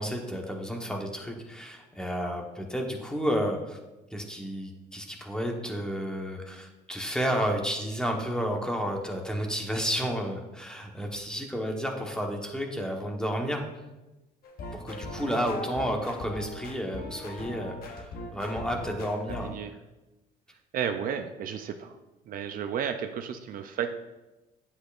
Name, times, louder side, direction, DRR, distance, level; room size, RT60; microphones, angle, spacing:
voice 1, 0.0-3.8 4.1-13.6 14.7-19.5, equal, 5° left, 2 dB, 1.1 m, -31 dB
sound 1, 14.4-19.6, left 1 dB, 60° left, 1.0 m, -40 dB
voice 2, 19.3-19.7 20.7-21.9 22.3-23.9, right 8 dB, 55° right, 7 dB, 0.5 m, -33 dB
8.5 x 7.8 x 2.5 m, 1.0 s
cardioid pair, 110°, 17 cm